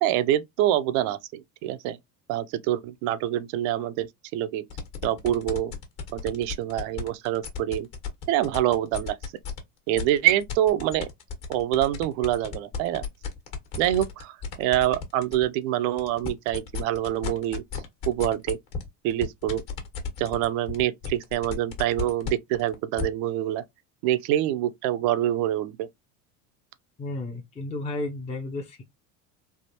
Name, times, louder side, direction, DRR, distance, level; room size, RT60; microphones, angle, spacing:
voice 1, 0.0-2.0 2.3-4.6 5.0-5.7 6.1-7.9 8.3-9.2 9.9-11.1 11.5-13.0 13.8-18.6 19.0-19.6 20.2-23.6 24.0-25.9, right 12 dB, 55° right, 0.5 m, -26 dB
sound 1, 4.7-9.6 10.0-15.4 15.8-23.0, left 7 dB, 45° left, 1.4 m, -34 dB
voice 2, 27.0-28.8, left 2 dB, 15° left, 0.6 m, -33 dB
3.4 x 2.5 x 2.7 m
hypercardioid pair, 80°, 50 cm